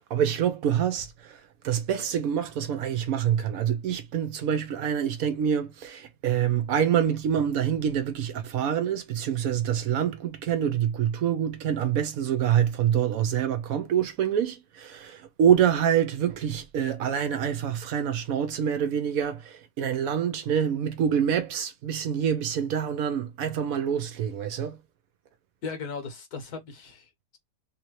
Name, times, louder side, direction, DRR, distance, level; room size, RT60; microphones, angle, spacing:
voice 1, 0.0-24.8, right 9 dB, 70° right, 1.0 m, -26 dB
voice 2, 25.6-27.4, left 5 dB, 70° left, 1.7 m, -37 dB
3.4 x 2.7 x 3.0 m
omnidirectional pair, 1.7 m